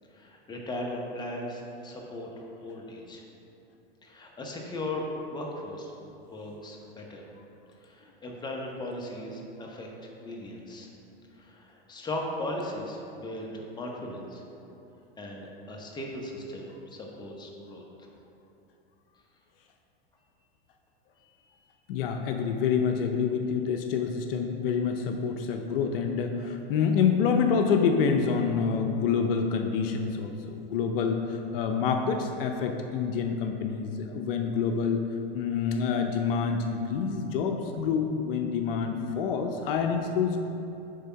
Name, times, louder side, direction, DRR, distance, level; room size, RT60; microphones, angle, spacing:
voice 1, 0.1-3.2 4.0-5.9 6.3-7.3 7.8-10.9 11.3-14.4 15.2-18.1 21.2-21.4, left 1 dB, 15° left, -1 dB, 1.0 m, -38 dB
voice 2, 21.9-35.0 35.3-40.4, left 6 dB, 65° left, 4 dB, 0.6 m, -27 dB
8.4 x 3.5 x 5.7 m, 2.9 s
hypercardioid pair, 120°, 31 cm